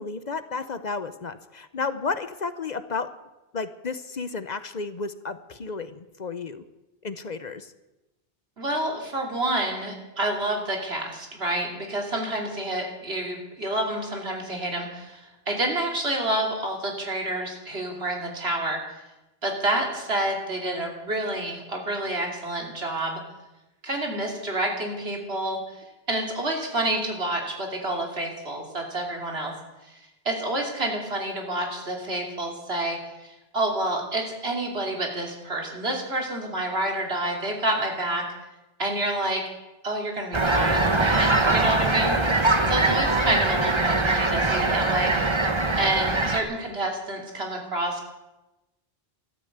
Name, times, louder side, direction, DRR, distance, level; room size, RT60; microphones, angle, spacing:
voice 1, 0.0-3.1 3.5-6.6 7.0-7.7, left 4 dB, 50° left, 12 dB, 0.8 m, -32 dB
voice 2, 8.6-19.0 19.4-23.2 23.8-25.8 26.1-29.5 29.8-38.2 38.8-39.4 39.8-45.1 45.8-48.1, right 1 dB, 80° right, 1 dB, 3.1 m, -28 dB
sound 1, 40.3-46.4, right 2 dB, 30° right, 1.3 m, -22 dB
13.5 x 12.5 x 8.0 m, 1.0 s
omnidirectional pair, 1.0 m